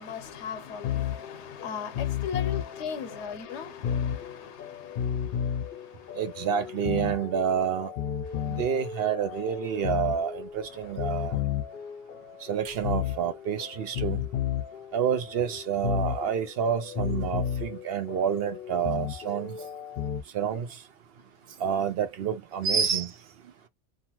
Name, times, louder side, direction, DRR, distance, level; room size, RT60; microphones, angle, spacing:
voice 1, 0.0-4.7, left 7 dB, 85° left, 0.9 m, -37 dB
sound 1, 0.8-20.2, left 9 dB, 60° left, 0.7 m, -33 dB
voice 2, 6.1-7.9 8.5-11.4 12.5-14.2 14.9-19.5 20.3-20.7 21.6-23.1, right 8 dB, 65° right, 0.8 m, -28 dB
2.7 x 2.3 x 2.9 m
omnidirectional pair, 1.1 m